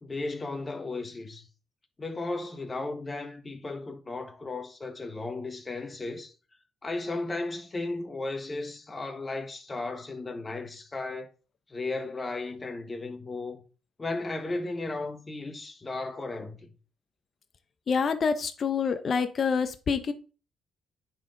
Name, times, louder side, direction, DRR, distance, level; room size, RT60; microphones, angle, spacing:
voice 1, 0.0-1.5 2.0-6.3 6.8-11.3 11.7-13.6 14.0-16.7, left 2 dB, 25° left, 1.5 m, -35 dB
voice 2, 17.9-20.1, left 6 dB, 50° left, 0.8 m, -27 dB
9.9 x 4.5 x 3.9 m
cardioid pair, 90°, 0 cm